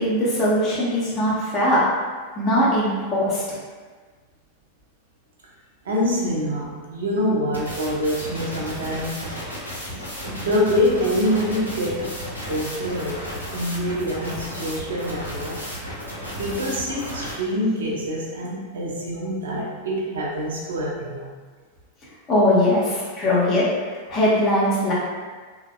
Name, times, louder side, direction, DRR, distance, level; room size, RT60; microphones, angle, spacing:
voice 1, 0.0-1.8 2.4-3.4 22.3-24.9, left 1 dB, 30° left, -7 dB, 0.6 m, -20 dB
voice 2, 5.8-9.3 10.3-12.1 12.5-15.6 16.4-21.3, equal, 65° right, -3 dB, 0.5 m, -25 dB
sound 1, 7.5-17.3, equal, 90° left, 0.6 m, -33 dB
3.1 x 2.0 x 2.2 m, 1.4 s
figure-of-eight pair, 90°, 0 cm